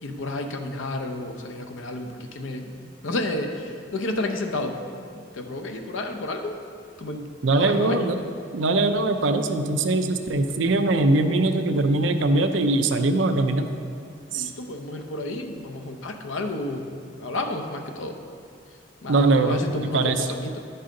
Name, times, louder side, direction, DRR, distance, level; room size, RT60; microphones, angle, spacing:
voice 1, 0.0-2.8 3.0-4.8 5.3-6.6 7.0-8.1 14.3-18.2 19.0-20.6, left 2 dB, 75° left, 4 dB, 0.7 m, -31 dB
voice 2, 7.4-8.2 8.5-13.7 14.3-14.5 19.1-20.3, right 2 dB, 70° right, 7 dB, 0.5 m, -22 dB
10.5 x 5.5 x 3.8 m, 2.3 s
head